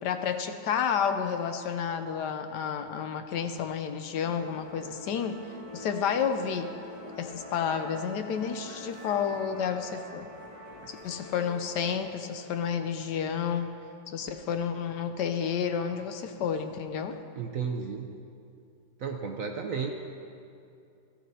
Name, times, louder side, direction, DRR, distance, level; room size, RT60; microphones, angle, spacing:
voice 1, 0.0-5.4 5.7-6.7 7.2-10.3 10.9-13.7 14.1-17.2, left 7 dB, 70° left, 8 dB, 1.2 m, -30 dB
Musical instrument, 4.1-12.0, equal, 20° left, 2.5 m, -45 dB
voice 2, 17.3-18.1 19.0-19.9, right 6 dB, 60° right, 3 dB, 0.9 m, -33 dB
17.0 x 13.0 x 2.7 m, 2.5 s
omnidirectional pair, 2.0 m